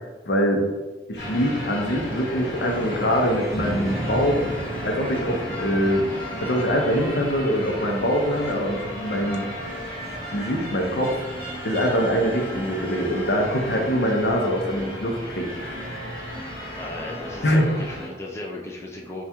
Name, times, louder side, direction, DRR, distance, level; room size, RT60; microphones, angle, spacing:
voice 1, 0.3-0.6 1.1-4.4 4.8-6.0 6.4-9.5 10.3-11.2 11.6-15.8 17.4-17.8, equal, 65° left, 2 dB, 0.7 m, -23 dB
sound 1, 1.2-18.1, equal, 30° left, 1.4 m, -33 dB
voice 2, 16.8-19.2, left 2 dB, 15° left, -2 dB, 0.3 m, -35 dB
4.3 x 2.3 x 3.4 m, 1.2 s
head